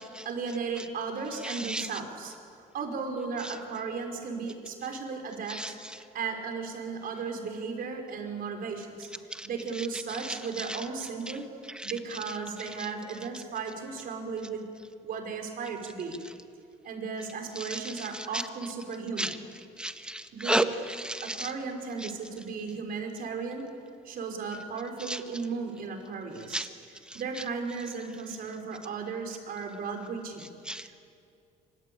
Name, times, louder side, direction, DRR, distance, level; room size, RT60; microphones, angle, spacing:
voice 1, 0.3-2.3 2.7-9.1 9.4-11.4 11.8-14.7 15.0-16.2 16.8-19.3 20.3-20.7 21.2-23.7 24.0-26.7 27.1-30.5 30.8-31.1, right 5 dB, 60° right, 3 dB, 5.3 m, -35 dB
voice 2, 1.4-1.9 5.5-5.7 9.3-9.5 10.2-10.8 11.8-11.9 17.5-18.3 19.2-19.3 19.8-21.5 25.0-25.2 26.5-26.7 27.1-27.2 30.7-30.9, right 1 dB, 5° right, 8 dB, 1.6 m, -32 dB
26.5 x 25.0 x 8.8 m, 2.5 s
cardioid pair, 110°, 17 cm